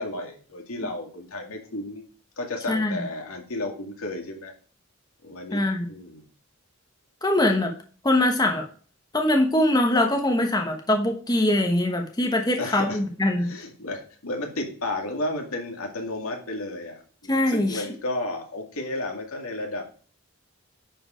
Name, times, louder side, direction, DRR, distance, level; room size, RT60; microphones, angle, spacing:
voice 1, 0.0-2.0 2.4-4.5 5.2-6.3 12.6-13.0 13.4-19.8, left 2 dB, 80° left, 2 dB, 2.1 m, -33 dB
voice 2, 2.7-3.0 5.5-5.9 7.2-7.7 8.0-8.6 9.1-13.5 17.3-17.8, left 1 dB, 20° left, 3 dB, 1.1 m, -22 dB
10.0 x 4.9 x 5.0 m, 0.42 s
head